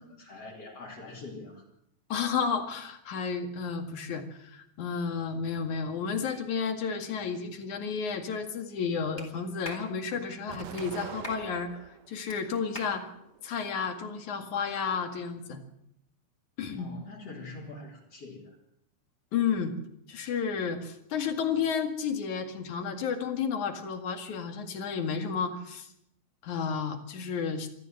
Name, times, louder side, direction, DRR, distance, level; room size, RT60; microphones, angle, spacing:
voice 1, 0.0-1.7 16.8-18.6, left 3 dB, 50° left, -4 dB, 4.1 m, -44 dB
voice 2, 2.1-13.1 13.4-15.6 16.6-16.9 19.3-19.7 20.1-25.9 26.4-27.7, left 6 dB, 70° left, 6 dB, 3.4 m, -32 dB
Clapping, 9.2-9.3 9.6-9.9 10.8-10.9 11.2-11.4 12.3-12.4 12.7-13.0, equal, 5° left, 3.8 m, -41 dB
Explosion, 10.5-12.1 12.7-13.6, right 10 dB, 65° right, 1.8 m, -44 dB
25.5 x 14.0 x 7.8 m, 0.78 s
omnidirectional pair, 3.6 m